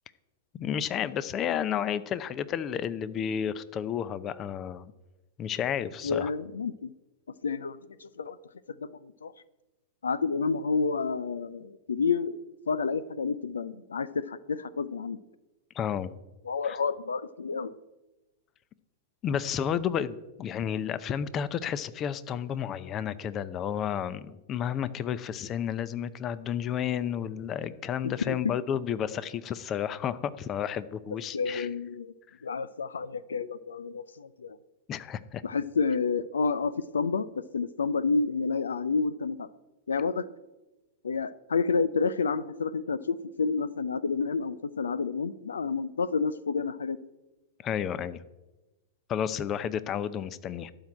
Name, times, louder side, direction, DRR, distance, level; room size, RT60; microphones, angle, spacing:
voice 1, 0.5-4.9 5.4-6.3 15.7-16.1 19.2-31.7 34.9-35.4 47.6-48.2 49.1-50.7, left 9 dB, 30° left, 16 dB, 0.6 m, -31 dB
voice 2, 6.0-6.9 7.4-8.4 8.8-9.3 10.0-12.3 12.7-15.2 16.4-17.8 28.0-28.4 31.3-32.1 32.4-34.6 35.4-39.5 39.9-40.3 41.0-47.0, left 4 dB, 80° left, 18 dB, 0.4 m, -29 dB
12.0 x 4.6 x 8.5 m, 1.1 s
hypercardioid pair, 100°, 0 cm